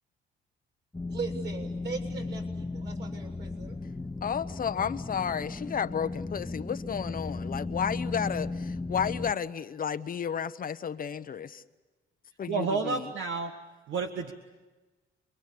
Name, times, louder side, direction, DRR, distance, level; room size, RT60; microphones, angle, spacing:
sound 1, 0.9-9.3, left 3 dB, 10° left, 0.8 m, -36 dB
voice 1, 1.1-3.8, right 5 dB, 60° right, 6.7 m, -39 dB
voice 2, 4.2-11.6 12.4-13.1, left 7 dB, 45° left, 0.9 m, -32 dB
voice 3, 12.5-13.5 13.9-14.3, right 4 dB, 75° right, 1.7 m, -30 dB
28.5 x 22.5 x 8.5 m
cardioid pair, 90°, 20 cm